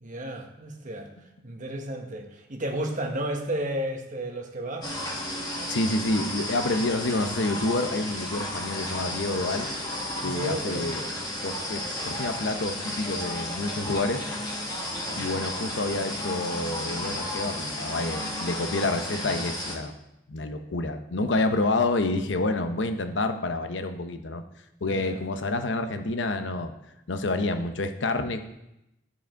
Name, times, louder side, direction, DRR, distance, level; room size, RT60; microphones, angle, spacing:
voice 1, 0.0-1.1 1.4-4.9 10.2-11.2 15.0-15.3 24.8-25.2, right 1 dB, 45° right, 3 dB, 1.2 m, -33 dB
sound 1, 4.8-19.8, left 1 dB, 20° left, 1.7 m, -33 dB
voice 2, 5.7-9.7 10.2-11.0 11.4-14.2 15.1-19.9 20.3-24.4 24.8-26.7 27.1-28.4, left 2 dB, 65° left, 8 dB, 0.7 m, -28 dB
13.0 x 4.9 x 4.5 m, 0.88 s
head